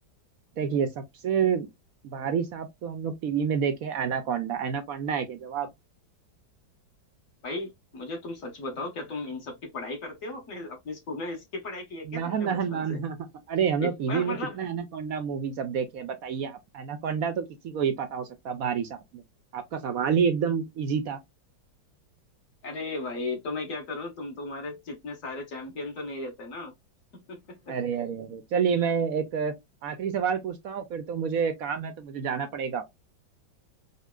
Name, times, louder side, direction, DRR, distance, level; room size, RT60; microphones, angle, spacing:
voice 1, 0.6-1.7 2.0-5.7 12.1-13.2 13.5-19.2 19.5-21.2 27.7-29.5 29.8-32.8, right 7 dB, 65° right, 0.9 m, -28 dB
voice 2, 7.4-13.0 13.8-14.6 22.6-26.7 27.1-27.8, left 2 dB, 45° left, 1.7 m, -36 dB
5.4 x 2.2 x 2.3 m
omnidirectional pair, 2.0 m